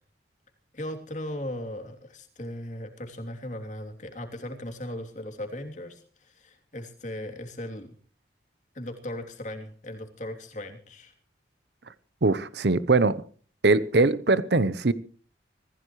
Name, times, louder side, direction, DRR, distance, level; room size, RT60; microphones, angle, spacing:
voice 1, 0.7-7.9 8.7-11.1, left 1 dB, 40° left, 3.0 m, -37 dB
voice 2, 12.2-13.2 13.6-14.9, right 3 dB, 65° right, 0.8 m, -22 dB
25.0 x 16.0 x 3.1 m
head